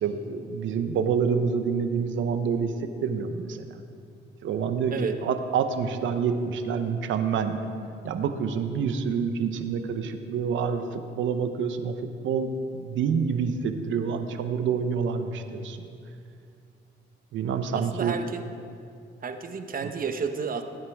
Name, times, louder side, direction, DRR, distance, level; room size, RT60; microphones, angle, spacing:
voice 1, 0.0-3.8 4.4-7.7 8.0-12.0 12.2-15.9 17.3-18.2 19.8-19.9, right 6 dB, 75° right, 8 dB, 0.9 m, -27 dB
voice 2, 17.7-18.4 19.2-20.6, right 5 dB, 45° right, 7 dB, 1.0 m, -31 dB
17.5 x 9.3 x 3.6 m, 2.5 s
cardioid pair, 90°, 20 cm